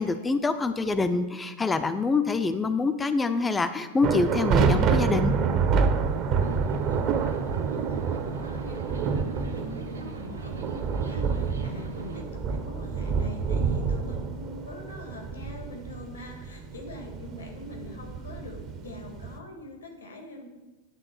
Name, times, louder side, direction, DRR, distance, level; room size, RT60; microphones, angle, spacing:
voice 1, 0.0-5.3, left 3 dB, 15° left, 10 dB, 0.5 m, -26 dB
sound 1, 4.0-19.4, right 5 dB, 35° right, 0.7 m, -28 dB
voice 2, 6.1-20.5, left 2 dB, 75° left, 2 dB, 1.7 m, -43 dB
sound 2, 6.4-12.2, right 2 dB, 80° right, 0.9 m, -40 dB
9.9 x 3.6 x 6.6 m, 1.1 s
figure-of-eight pair, 90°, 0 cm